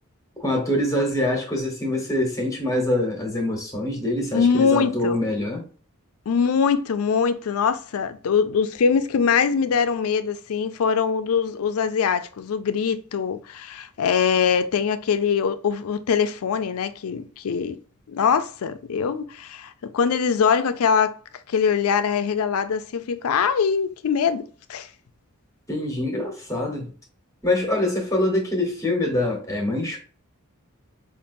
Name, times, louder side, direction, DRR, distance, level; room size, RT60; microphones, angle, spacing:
voice 1, 0.4-5.6 25.7-26.9 27.4-30.0, left 1 dB, 15° left, 1.0 m, -24 dB
voice 2, 4.3-5.2 6.3-17.8 18.1-21.1 21.5-24.9, left 6 dB, 80° left, 0.4 m, -23 dB
5.2 x 2.5 x 2.6 m
head